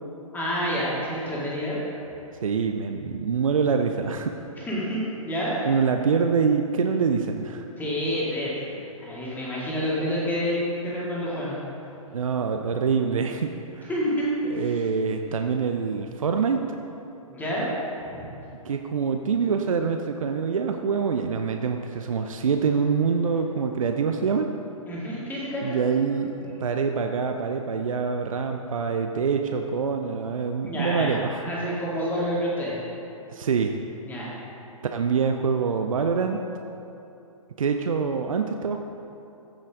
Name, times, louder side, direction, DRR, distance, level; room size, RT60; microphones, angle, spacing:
voice 1, 0.3-1.8 4.6-5.6 7.8-11.6 13.9-14.8 17.3-17.7 18.1-18.2 24.9-25.8 30.7-32.8 34.1-34.3, equal, 10° left, -6 dB, 2.3 m, -28 dB
voice 2, 2.4-4.3 5.6-7.6 12.1-13.9 14.5-16.6 18.6-24.5 25.6-31.4 33.3-33.8 34.9-36.4 37.6-38.8, right 5 dB, 65° right, 5 dB, 0.6 m, -25 dB
15.0 x 6.4 x 3.7 m, 2.8 s
figure-of-eight pair, 120°, 18 cm